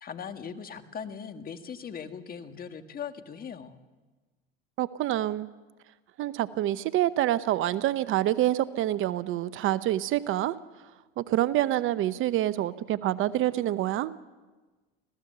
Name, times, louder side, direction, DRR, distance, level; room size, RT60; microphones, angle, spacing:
voice 1, 0.0-3.8, left 7 dB, 30° left, 8 dB, 1.8 m, -39 dB
voice 2, 4.8-5.5 6.2-10.6 11.2-14.1, right 13 dB, 45° right, 15 dB, 0.8 m, -27 dB
26.0 x 17.0 x 6.8 m, 1.3 s
hypercardioid pair, 90°, 29 cm